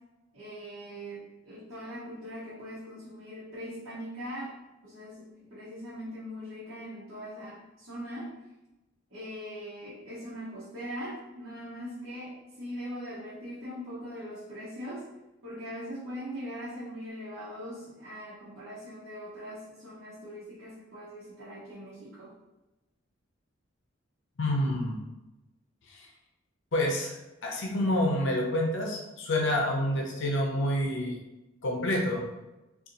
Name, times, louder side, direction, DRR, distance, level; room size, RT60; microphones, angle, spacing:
voice 1, 0.3-4.5 4.8-8.3 9.1-15.0 15.4-22.3, equal, 75° right, -9 dB, 1.0 m, -41 dB
voice 2, 24.4-25.0 25.9-26.1 26.7-27.1 27.4-31.1 31.6-32.2, left 1 dB, 65° left, 0 dB, 0.6 m, -28 dB
2.7 x 2.4 x 3.8 m, 1.0 s
head